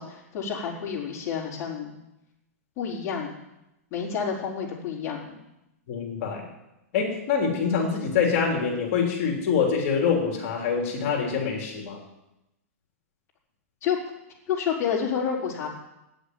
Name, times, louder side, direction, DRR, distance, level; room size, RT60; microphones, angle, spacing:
voice 1, 0.0-2.0 2.8-3.3 3.9-5.4 13.8-14.0 14.5-15.7, left 7 dB, 30° left, -5 dB, 4.5 m, -29 dB
voice 2, 5.9-6.4 6.9-12.0, left 6 dB, 50° left, 0 dB, 3.3 m, -25 dB
9.2 x 7.9 x 9.4 m, 0.92 s
hypercardioid pair, 140°, 8 cm